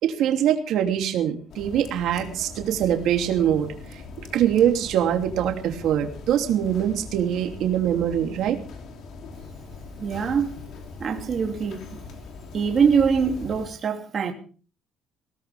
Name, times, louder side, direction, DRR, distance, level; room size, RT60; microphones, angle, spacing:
voice 1, 0.0-4.0 4.3-8.6, right 10 dB, 65° right, 2.8 m, -23 dB
sound 1, 1.5-13.7, left 4 dB, 55° left, 3.0 m, -41 dB
voice 2, 10.0-10.5 11.0-12.0 12.5-14.3, right 6 dB, 30° right, 2.8 m, -23 dB
21.0 x 18.0 x 3.5 m
cardioid pair, 175°, 0 cm